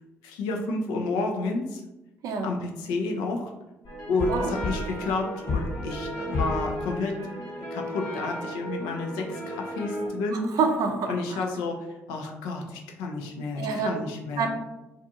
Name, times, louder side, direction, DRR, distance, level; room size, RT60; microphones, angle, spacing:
voice 1, 0.2-1.8 2.4-3.5 4.1-7.2 7.6-10.5 11.1-11.8 12.1-14.5, left 3 dB, 75° left, 2 dB, 0.4 m, -30 dB
sound 1, 3.8-10.1, left 1 dB, 55° left, 1.1 m, -32 dB
voice 2, 10.3-11.4 13.6-14.0 14.4-14.5, right 5 dB, 60° right, 4 dB, 0.4 m, -27 dB
2.4 x 2.4 x 2.7 m, 0.98 s
hypercardioid pair, 45°, 7 cm